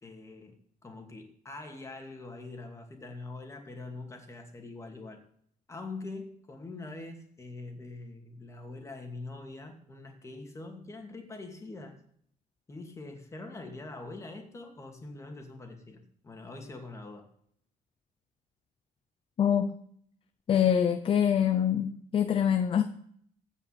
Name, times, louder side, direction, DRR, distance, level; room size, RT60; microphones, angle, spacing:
voice 1, 0.0-0.6 0.8-5.2 5.7-12.0 12.7-17.3, left 2 dB, 20° left, 2.6 m, -44 dB
voice 2, 19.4-19.7 20.5-22.8, left 9 dB, 40° left, 0.7 m, -25 dB
15.5 x 5.6 x 8.5 m
cardioid pair, 145°, 15 cm